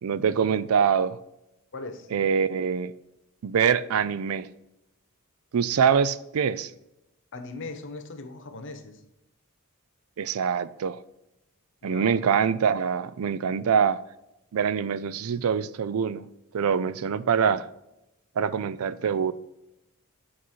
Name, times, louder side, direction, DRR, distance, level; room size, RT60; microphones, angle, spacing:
voice 1, 0.0-1.2 2.1-2.9 3.4-4.5 5.5-6.7 10.2-11.0 11.8-14.0 14.5-16.3 16.5-17.7 18.4-19.3, right 7 dB, 75° right, 0.4 m, -24 dB
voice 2, 1.7-2.1 7.3-9.0 11.8-12.3, left 3 dB, 60° left, 1.0 m, -39 dB
8.6 x 4.2 x 4.5 m
head